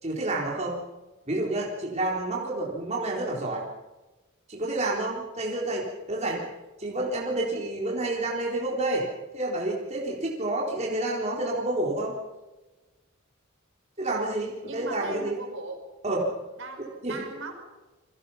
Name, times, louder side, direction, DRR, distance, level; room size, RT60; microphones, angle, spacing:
voice 1, 0.0-0.8 1.3-3.6 4.5-6.5 6.8-9.1 9.3-12.2 14.0-15.4 16.0-16.3 16.8-17.2, right 2 dB, 30° right, -3 dB, 4.1 m, -29 dB
voice 2, 14.6-15.8 16.6-17.6, right 2 dB, 65° right, 4 dB, 5.3 m, -39 dB
29.0 x 22.5 x 5.8 m, 1.1 s
head